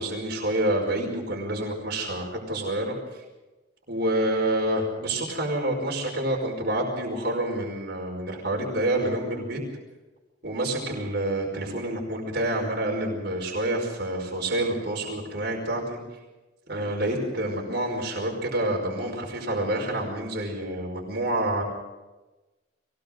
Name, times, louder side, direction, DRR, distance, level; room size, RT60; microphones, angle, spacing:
voice 1, 0.0-3.0 3.9-9.6 10.4-16.0 16.7-21.6, right 1 dB, 55° right, 0 dB, 5.3 m, -28 dB
23.5 x 18.5 x 6.4 m, 1.1 s
head